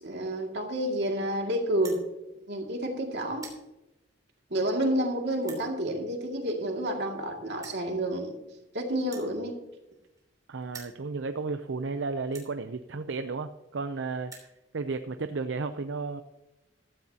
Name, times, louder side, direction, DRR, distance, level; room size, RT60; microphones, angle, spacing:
voice 1, 0.0-2.0 2.5-3.5 4.5-8.4 8.7-9.6, right 1 dB, 60° right, 1 dB, 2.4 m, -29 dB
sound 1, 1.8-2.0 2.7-2.9 3.2-3.6 4.4-4.5 5.4-5.7 6.7-6.8 7.0-7.1 7.6-7.8 9.0-10.3 10.6-11.0 11.7-11.8 12.3-12.5 13.4-13.5 13.8-13.9 14.1-14.5, right 4 dB, 20° right, 3.2 m, -47 dB
voice 2, 10.5-16.2, right 4 dB, 80° right, 9 dB, 0.6 m, -33 dB
15.0 x 13.5 x 2.9 m, 0.94 s
head